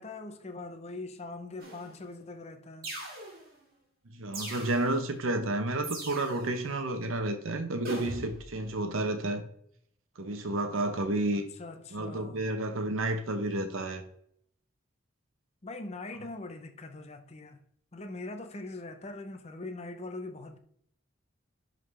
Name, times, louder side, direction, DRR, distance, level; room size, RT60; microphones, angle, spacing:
voice 1, 0.0-2.9 11.3-12.4 15.6-17.6 17.9-20.6, left 2 dB, 30° left, 0.6 m, -42 dB
sound 1, 1.6-2.1 2.8-3.6 4.3-5.1 5.8-6.6 7.8-8.5, right 2 dB, 45° right, 2.1 m, -41 dB
voice 2, 4.1-9.4 10.2-11.5 11.9-14.0, right 2 dB, 70° right, 0.8 m, -31 dB
11.0 x 3.8 x 3.2 m
head